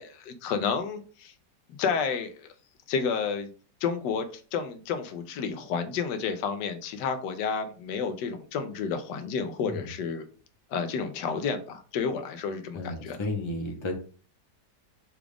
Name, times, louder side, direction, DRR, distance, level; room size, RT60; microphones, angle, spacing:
voice 1, 0.0-1.3 1.7-2.5 2.9-3.5 3.8-10.2 10.7-13.2, left 6 dB, 80° left, 8 dB, 1.3 m, -31 dB
voice 2, 12.7-13.9, left 2 dB, 30° left, 2 dB, 0.5 m, -33 dB
5.9 x 2.4 x 3.4 m, 0.40 s
omnidirectional pair, 1.9 m